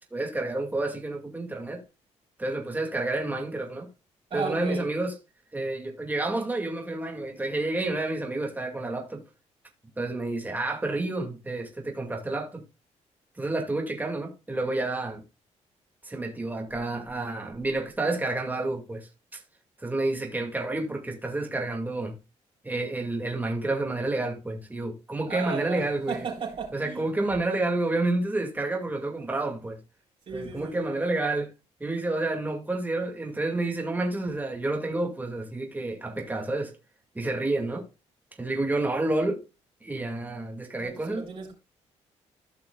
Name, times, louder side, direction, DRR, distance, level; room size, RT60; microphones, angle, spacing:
voice 1, 0.1-1.8 2.4-3.9 4.3-5.1 5.5-9.2 10.0-12.6 13.4-15.2 16.0-19.4 19.8-22.2 22.6-26.2 26.7-29.8 30.3-31.5 31.8-36.7 37.1-37.8 38.4-39.4 39.8-41.2, right 2 dB, 15° right, 2.2 m, -29 dB
voice 2, 4.3-4.9 25.3-27.0 30.3-31.0 40.8-41.5, right 5 dB, 55° right, 3.9 m, -35 dB
15.0 x 5.8 x 2.4 m
cardioid pair, 90°, 13 cm